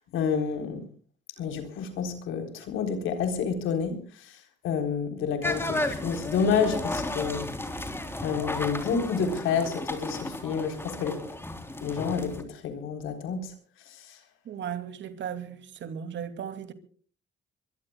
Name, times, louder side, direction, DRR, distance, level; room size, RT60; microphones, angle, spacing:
voice 1, 0.1-0.8 1.4-7.5 8.2-11.2 11.8-13.6 13.9-14.2, left 6 dB, 90° left, 3.9 m, -29 dB
sound 1, 5.4-12.4, left 1 dB, 10° left, 3.5 m, -33 dB
voice 2, 14.5-16.7, right 8 dB, 65° right, 2.6 m, -36 dB
23.5 x 22.5 x 2.3 m
cardioid pair, 90°, 20 cm